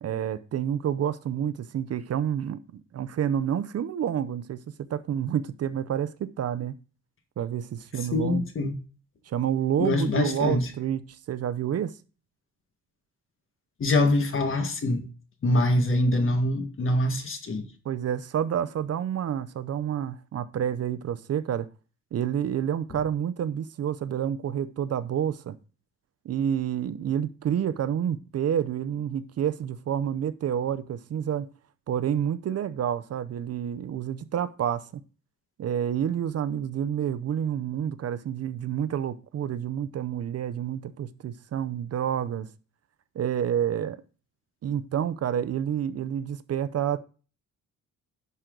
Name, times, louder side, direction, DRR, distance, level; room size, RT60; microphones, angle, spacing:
voice 1, 0.0-6.8 7.4-8.4 9.3-11.9 17.8-21.7 22.1-25.6 26.2-31.5 31.9-34.8 35.6-42.5 43.1-44.0 44.6-47.0, right 9 dB, 55° right, 0.7 m, -29 dB
voice 2, 7.9-8.7 9.8-10.7 13.8-15.0 15.4-17.6, left 2 dB, 45° left, 1.7 m, -24 dB
11.0 x 6.2 x 3.9 m
cardioid pair, 120°, 30 cm